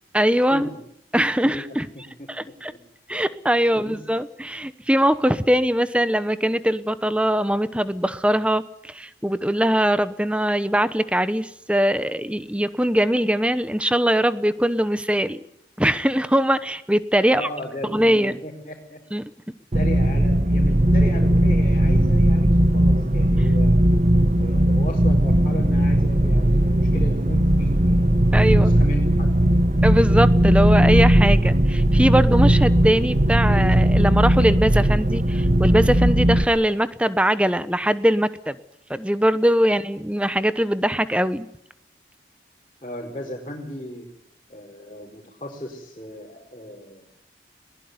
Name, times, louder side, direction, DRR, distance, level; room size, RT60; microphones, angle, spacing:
voice 1, 0.1-0.7 1.1-1.9 2.3-2.7 3.1-15.4 15.8-17.5 17.8-18.4 19.1-19.2 28.3-28.7 29.8-38.6 38.9-41.5, equal, 5° right, 14 dB, 0.9 m, -21 dB
voice 2, 1.4-2.3 2.7-2.8 3.7-4.0 17.3-19.0 19.7-23.8 24.3-28.0 28.5-29.3 42.8-44.1 44.5-47.0, equal, 30° left, -4 dB, 4.6 m, -36 dB
sound 1, 19.7-36.4, right 1 dB, 40° right, 1.0 m, -18 dB
21.5 x 20.5 x 9.5 m, 0.77 s
head